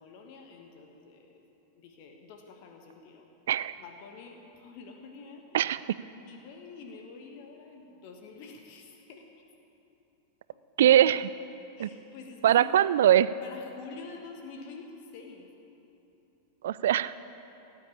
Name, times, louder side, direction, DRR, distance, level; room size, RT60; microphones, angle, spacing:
voice 1, 0.0-1.4 1.7-3.3 3.8-5.4 6.2-9.2 11.8-12.9 13.4-15.5, left 4 dB, 45° left, 3 dB, 1.4 m, -47 dB
voice 2, 10.8-11.3 11.8-11.9 12.4-13.3 16.6-17.1, right 11 dB, 60° right, 17 dB, 0.3 m, -22 dB
18.0 x 8.4 x 8.5 m, 2.9 s
figure-of-eight pair, 90°, 0 cm